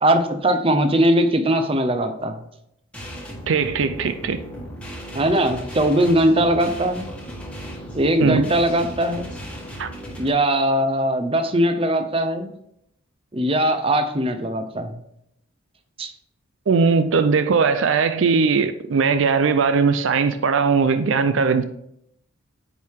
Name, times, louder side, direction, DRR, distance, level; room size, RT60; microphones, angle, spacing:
voice 1, 0.0-2.4 5.1-7.1 7.9-9.3 10.2-12.5 13.3-15.0 16.0-16.1, right 1 dB, 25° right, 0.7 m, -20 dB
sound 1, 2.9-10.3, equal, 5° left, 1.5 m, -36 dB
voice 2, 3.5-4.4 8.2-8.5 9.8-9.9 16.7-21.6, right 5 dB, 65° right, 0.4 m, -19 dB
9.0 x 4.7 x 3.6 m
head